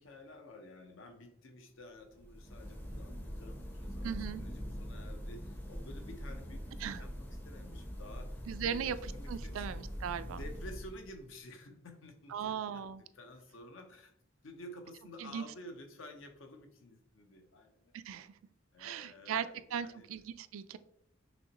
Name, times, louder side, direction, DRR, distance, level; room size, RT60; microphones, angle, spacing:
voice 1, 0.0-4.1 4.4-9.7 10.3-12.8 13.1-14.1 14.4-18.0 18.7-20.1, left 1 dB, 70° left, 5 dB, 0.8 m, -52 dB
sound 1, 2.1-11.3, equal, 10° left, 0.5 m, -43 dB
voice 2, 4.0-4.4 6.8-7.0 8.5-10.4 12.3-13.0 15.2-15.4 17.9-18.3 18.8-20.8, right 8 dB, 80° right, 13 dB, 0.3 m, -38 dB
6.1 x 3.0 x 2.9 m, 0.73 s
head